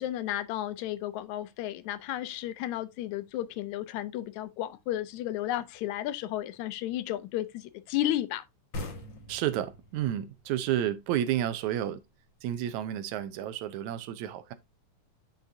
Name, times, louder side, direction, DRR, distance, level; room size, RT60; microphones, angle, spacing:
voice 1, 0.0-8.4, left 13 dB, 80° left, 1.9 m, -33 dB
sound 1, 8.7-12.1, left 1 dB, 45° left, 1.7 m, -43 dB
voice 2, 9.3-12.0 12.4-14.5, right 11 dB, 80° right, 2.1 m, -31 dB
8.5 x 6.3 x 2.6 m
omnidirectional pair, 3.4 m